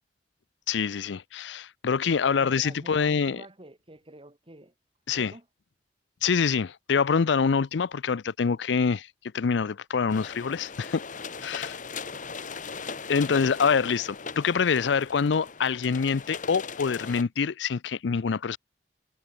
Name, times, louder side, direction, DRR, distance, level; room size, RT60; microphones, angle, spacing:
voice 1, 0.7-3.4 5.1-5.3 6.2-9.1 9.3-11.0 11.4-11.8 13.1-18.6, left 6 dB, 85° left, 0.5 m, -25 dB
voice 2, 2.4-4.7 5.2-5.5 12.1-12.3, right 1 dB, 30° right, 3.1 m, -48 dB
sound 1, 10.1-17.2, left 5 dB, 50° left, 1.6 m, -39 dB
head